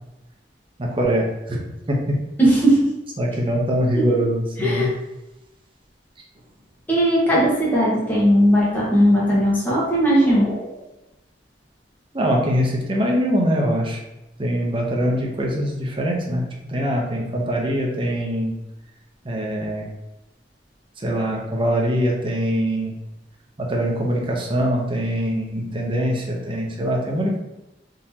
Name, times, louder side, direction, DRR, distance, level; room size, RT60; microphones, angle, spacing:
voice 1, 0.8-1.6 1.9-2.0 3.2-4.9 12.1-14.0 14.4-16.4 16.7-18.5 19.2-19.9 21.0-22.9 23.6-27.4, equal, 30° right, -1 dB, 0.7 m, -23 dB
voice 2, 2.4-2.8 4.6-4.9 6.9-10.7, equal, 10° left, -7 dB, 1.2 m, -18 dB
3.7 x 3.0 x 2.8 m, 0.93 s
head